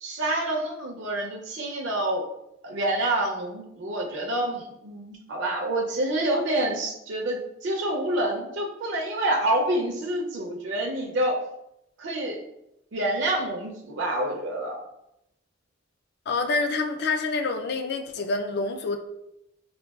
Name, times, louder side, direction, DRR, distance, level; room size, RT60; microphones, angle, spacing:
voice 1, 0.0-2.3 2.6-11.4 12.0-12.4 12.9-14.8, right 1 dB, 60° right, 0 dB, 0.5 m, -27 dB
voice 2, 16.3-19.0, left 3 dB, 50° left, 5 dB, 0.3 m, -27 dB
5.0 x 2.2 x 2.3 m, 0.84 s
head